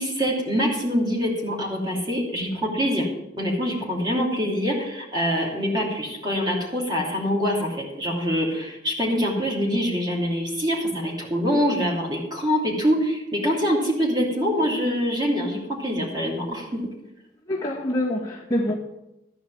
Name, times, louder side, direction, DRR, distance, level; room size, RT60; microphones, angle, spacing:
voice 1, 0.0-3.1 3.4-16.9, equal, 25° right, 2.9 m, -24 dB
voice 2, 17.5-18.7, left 1 dB, 20° left, 1.8 m, -25 dB
13.5 x 5.1 x 9.2 m
head